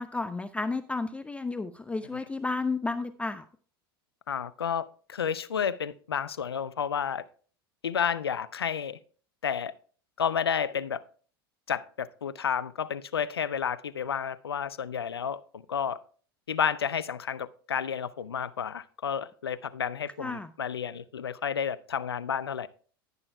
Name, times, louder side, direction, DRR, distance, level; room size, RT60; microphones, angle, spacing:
voice 1, 0.0-3.5 20.2-20.5, left 3 dB, 10° left, 0.4 m, -32 dB
voice 2, 4.3-7.2 7.8-9.0 9.4-9.7 10.2-11.0 11.7-16.0 16.5-22.7, left 7 dB, 85° left, 0.5 m, -31 dB
10.5 x 10.5 x 2.3 m
hypercardioid pair, 85°, 13 cm